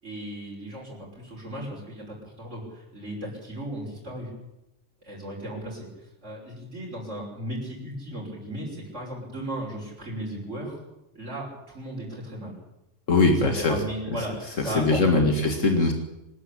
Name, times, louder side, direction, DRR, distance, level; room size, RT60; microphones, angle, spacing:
voice 1, 0.0-4.3 5.0-5.9 6.2-10.8 11.1-12.5 13.3-15.4, right 1 dB, 65° right, -4 dB, 6.4 m, -36 dB
voice 2, 13.1-13.8 14.7-15.9, left 3 dB, 75° left, 3 dB, 2.3 m, -21 dB
25.0 x 13.0 x 8.8 m, 0.92 s
omnidirectional pair, 1.3 m